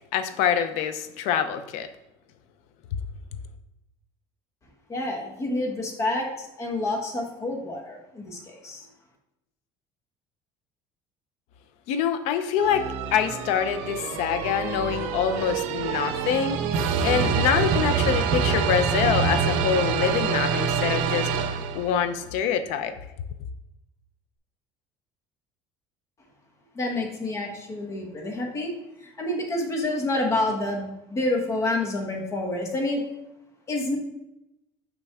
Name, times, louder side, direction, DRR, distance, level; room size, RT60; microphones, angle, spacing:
voice 1, 0.1-1.9 2.9-3.0 11.9-22.9, left 8 dB, 75° left, 11 dB, 0.6 m, -25 dB
voice 2, 4.9-8.9 26.7-28.7 29.0-33.0 33.7-34.0, left 2 dB, 25° left, 1 dB, 1.2 m, -28 dB
sound 1, 12.6-22.1, right 6 dB, 80° right, 0.6 m, -26 dB
5.8 x 5.3 x 3.5 m, 0.89 s
cardioid pair, 160°, 11 cm